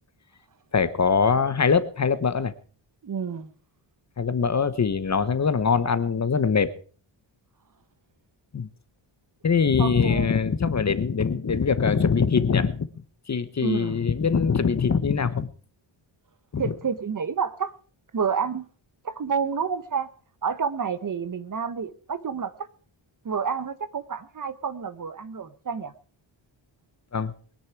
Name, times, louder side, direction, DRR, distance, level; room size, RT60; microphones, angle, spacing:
voice 1, 0.7-2.5 4.2-6.7 8.5-8.7 9.4-12.9 13.3-15.5 16.5-16.7 27.1-27.3, left 5 dB, 35° left, 1.0 m, -23 dB
voice 2, 3.0-3.5 9.8-10.4 13.6-14.0 16.6-17.7 18.1-18.7 19.0-20.1 20.4-22.5 23.2-25.9, right 6 dB, 40° right, 1.1 m, -29 dB
22.5 x 10.5 x 4.7 m
wide cardioid pair, 170°, 48 cm